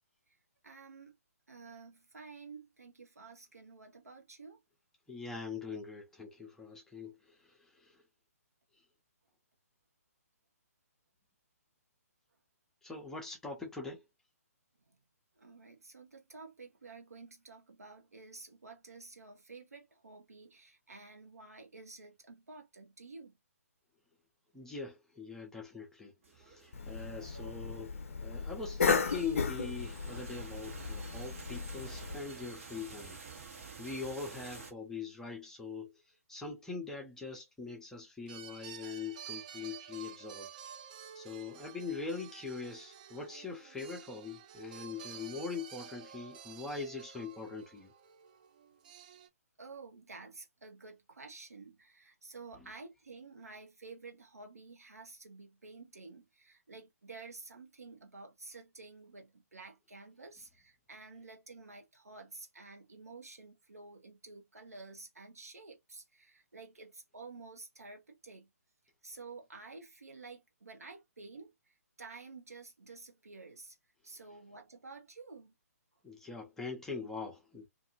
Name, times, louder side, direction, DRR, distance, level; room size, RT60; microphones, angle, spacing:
voice 1, 0.6-1.2 1.5-4.6 15.4-23.4 49.6-68.5 69.0-71.5 72.0-73.8 74.0-75.5, right 3 dB, 70° right, 1.0 m, -51 dB
voice 2, 5.1-7.9 12.8-14.0 24.5-28.0 28.2-33.2 33.8-35.9 36.3-40.5 41.1-47.9 52.6-52.7 76.0-77.7, left 4 dB, 5° left, 0.7 m, -42 dB
sound 1, 26.2-34.7, right 4 dB, 55° right, 1.2 m, -50 dB
Cough, 26.7-32.2, left 5 dB, 55° left, 0.5 m, -35 dB
sound 2, 31.9-32.3 33.0-33.1 38.3-49.3, right 9 dB, 30° right, 0.3 m, -51 dB
2.5 x 2.5 x 2.9 m
figure-of-eight pair, 130°, 8 cm